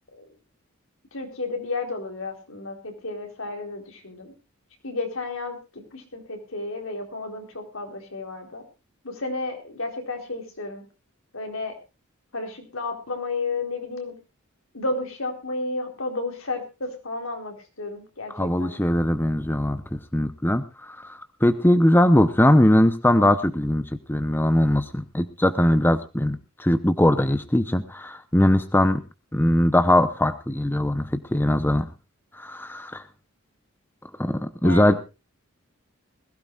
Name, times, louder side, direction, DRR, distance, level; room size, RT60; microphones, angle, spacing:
voice 1, 1.1-4.3 4.8-8.6 9.0-10.8 11.3-11.8 12.3-14.1 14.7-18.8 34.6-35.0, left 3 dB, 75° left, 4 dB, 4.1 m, -32 dB
voice 2, 18.3-29.0 29.3-31.9 32.4-33.0 34.2-35.0, left 1 dB, 10° left, 11 dB, 0.8 m, -21 dB
21.0 x 16.0 x 2.5 m, 0.29 s
head